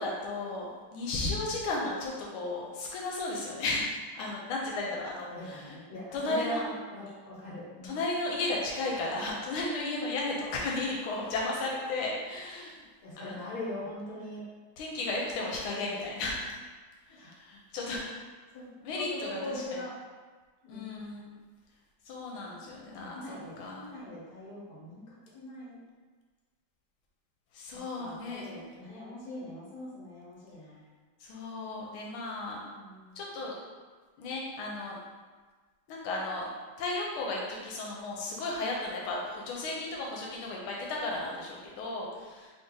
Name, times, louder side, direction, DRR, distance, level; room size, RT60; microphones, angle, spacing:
voice 1, 0.0-3.8 4.1-5.8 6.1-6.6 7.8-12.7 13.2-13.5 14.8-16.5 17.1-18.0 18.8-19.6 20.7-21.3 22.0-23.9 27.5-28.4 31.2-32.6 33.1-33.5 34.2-35.0 35.9-36.5 36.8-42.5, left 2 dB, 85° left, -3 dB, 1.4 m, -34 dB
voice 2, 5.3-8.0 13.0-14.4 17.2-17.3 18.5-19.9 20.6-20.9 22.9-25.8 28.0-30.8 32.7-33.1, left 1 dB, 55° left, -6 dB, 1.4 m, -41 dB
3.4 x 2.7 x 3.6 m, 1.4 s
omnidirectional pair, 2.3 m